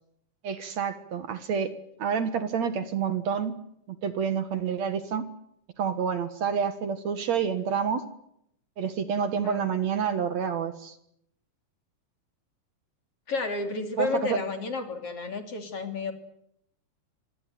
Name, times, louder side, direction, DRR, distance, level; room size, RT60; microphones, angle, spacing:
voice 1, 0.4-1.7 2.0-3.5 3.9-5.3 5.8-8.0 8.8-11.0 14.0-14.4, right 7 dB, 60° right, 11 dB, 2.5 m, -28 dB
voice 2, 13.3-16.1, left 3 dB, 45° left, 7 dB, 3.6 m, -31 dB
26.0 x 20.0 x 9.3 m, 0.73 s
omnidirectional pair, 3.9 m